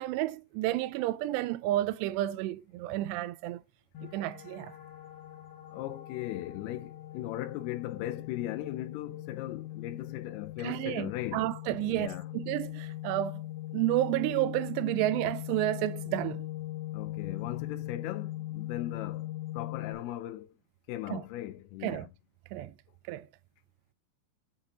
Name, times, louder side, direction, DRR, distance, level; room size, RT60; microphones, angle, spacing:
voice 1, 0.0-3.6 4.0-4.7 10.6-13.4 13.7-16.5 21.1-21.2 21.8-22.1 22.5-22.7 23.1-23.3, right 15 dB, 85° right, 2.7 m, -31 dB
sound 1, 3.9-19.9, left 15 dB, 55° left, 1.8 m, -40 dB
voice 2, 5.7-11.5 11.8-12.3 16.9-20.5 20.9-22.1, left 14 dB, 80° left, 2.4 m, -38 dB
8.8 x 4.9 x 2.9 m
omnidirectional pair, 4.8 m